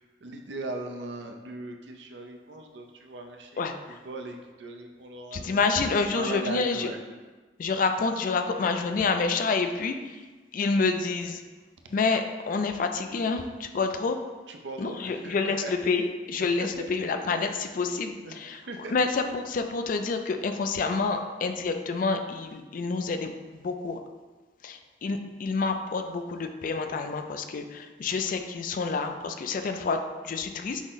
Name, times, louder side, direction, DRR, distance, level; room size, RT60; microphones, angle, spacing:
voice 1, 0.2-3.6 3.9-5.6 6.1-7.0 14.5-15.8 16.4-16.9 17.3-17.6 18.2-18.9, right 2 dB, 80° right, 4 dB, 0.5 m, -39 dB
voice 2, 3.6-4.0 5.3-6.9 7.6-10.2 10.5-11.4 11.9-14.2 14.8-18.6 18.9-24.0 24.6-30.8, left 4 dB, 50° left, 6 dB, 0.4 m, -28 dB
6.1 x 2.1 x 3.8 m, 1.3 s
head